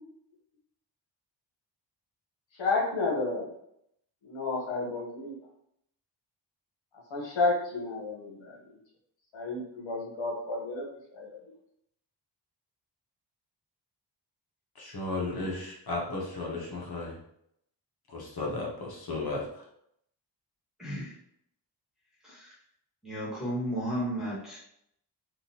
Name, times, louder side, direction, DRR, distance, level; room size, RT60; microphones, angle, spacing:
voice 1, 2.6-3.5 4.2-5.3 7.1-8.8 9.3-10.8 11.1-11.4, left 3 dB, 85° left, -2 dB, 1.1 m, -31 dB
voice 2, 14.8-17.2 18.1-19.4, left 2 dB, 55° left, -3 dB, 1.2 m, -34 dB
voice 3, 20.8-21.1 22.2-22.5 23.0-24.6, equal, ahead, -8 dB, 1.5 m, -33 dB
3.7 x 2.6 x 2.8 m, 0.74 s
cardioid pair, 85°, 45 cm